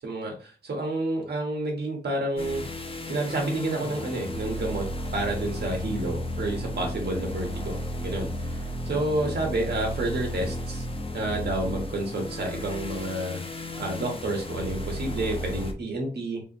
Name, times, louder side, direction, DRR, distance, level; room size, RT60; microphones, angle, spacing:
voice 1, 0.0-2.6 3.0-4.9 5.1-10.9 11.1-13.4 13.8-16.4, right 2 dB, 70° right, 0 dB, 1.3 m, -30 dB
sound 1, 2.4-15.7, left 1 dB, 35° left, 0.8 m, -34 dB
4.3 x 2.6 x 3.0 m, 0.39 s
cardioid pair, 55°, 17 cm